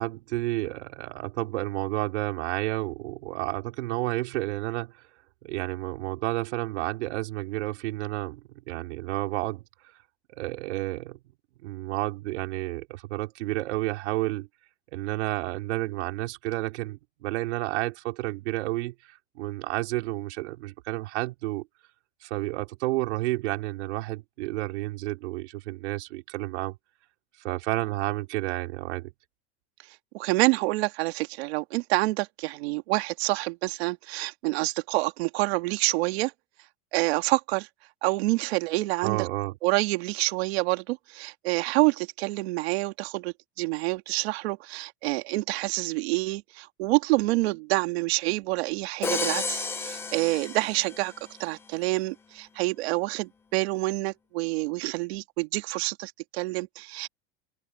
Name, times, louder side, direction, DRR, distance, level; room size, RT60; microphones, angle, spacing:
voice 1, 0.0-5.0 5.4-9.6 10.3-11.2 11.6-14.5 14.9-21.7 22.2-26.8 27.4-29.1 39.0-39.5, right 19 dB, 85° right, 4.4 m, -31 dB
voice 2, 30.1-36.3 36.9-37.7 38.0-39.3 39.6-51.1 51.4-57.1, right 21 dB, 65° right, 2.1 m, -27 dB
Crash cymbal, 49.0-51.2, left 4 dB, 5° left, 0.4 m, -32 dB
open air
supercardioid pair, 175°, 33 cm